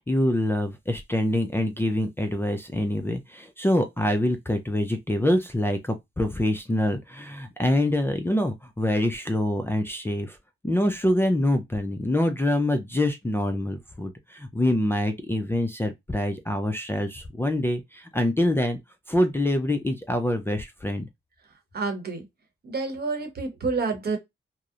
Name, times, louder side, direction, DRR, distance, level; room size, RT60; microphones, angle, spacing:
voice 1, 0.1-10.4 10.6-18.8 19.1-21.1, left 1 dB, 10° left, 0.4 m, -25 dB
voice 2, 21.7-22.3 22.6-24.2, right 4 dB, 50° right, 0.9 m, -28 dB
2.7 x 2.0 x 2.4 m
cardioid pair, 85°, 21 cm